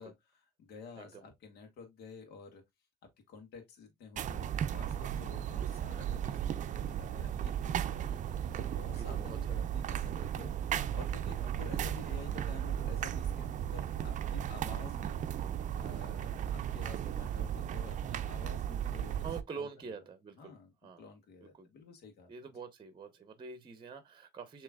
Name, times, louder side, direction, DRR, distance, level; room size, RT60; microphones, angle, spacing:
voice 1, 0.0-2.6 3.3-8.2 8.6-15.2 15.8-19.3 19.6-19.9 20.4-22.3, left 4 dB, 75° left, 1.5 m, -51 dB
voice 2, 1.0-1.3 7.9-9.7 10.1-10.3 11.3-11.4 19.2-20.5 20.8-21.1 21.5-21.7 22.3-24.6, right 5 dB, 30° right, 0.9 m, -46 dB
sound 1, 4.2-19.4, right 10 dB, 45° right, 0.5 m, -35 dB
6.9 x 3.0 x 2.4 m
cardioid pair, 110°, 17 cm